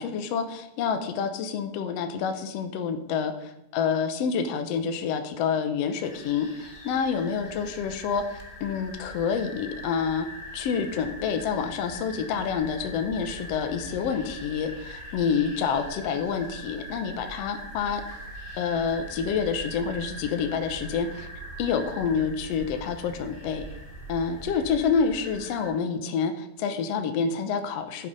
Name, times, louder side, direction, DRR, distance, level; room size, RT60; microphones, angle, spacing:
voice 1, 0.0-10.3 10.5-18.0 18.5-21.3 21.6-23.6 24.1-28.1, left 6 dB, 85° left, 7 dB, 1.4 m, -28 dB
sound 1, 6.0-25.7, right 1 dB, 25° left, 1.3 m, -41 dB
11.5 x 7.7 x 5.3 m, 0.91 s
omnidirectional pair, 4.1 m